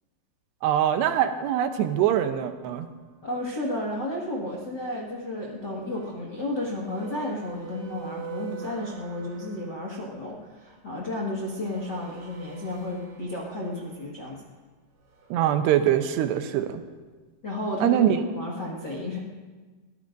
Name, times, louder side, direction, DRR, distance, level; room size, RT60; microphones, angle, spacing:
voice 1, 0.6-2.9 15.3-16.8 17.8-18.2, right 10 dB, 80° right, 8 dB, 2.8 m, -23 dB
sound 1, 1.4-3.1 5.5-10.1 11.0-14.5 15.0-15.4, right 8 dB, 60° right, 6.0 m, -46 dB
voice 2, 3.2-14.4 17.4-19.2, left 1 dB, 60° left, -5 dB, 1.0 m, -32 dB
22.5 x 19.0 x 2.6 m, 1.3 s
omnidirectional pair, 5.0 m